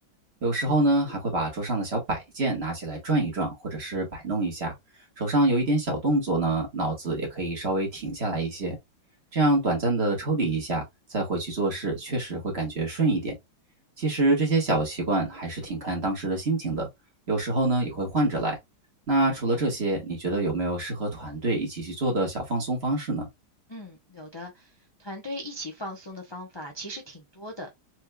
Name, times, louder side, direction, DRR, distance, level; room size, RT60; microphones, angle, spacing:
voice 1, 0.4-4.7 5.2-8.8 9.3-10.8 11.1-13.3 14.0-16.9 17.3-18.6 19.1-23.3, right 2 dB, 35° right, 1.5 m, -26 dB
voice 2, 23.7-24.7 25.0-27.8, equal, 40° left, 0.3 m, -38 dB
4.3 x 3.0 x 2.2 m
omnidirectional pair, 2.0 m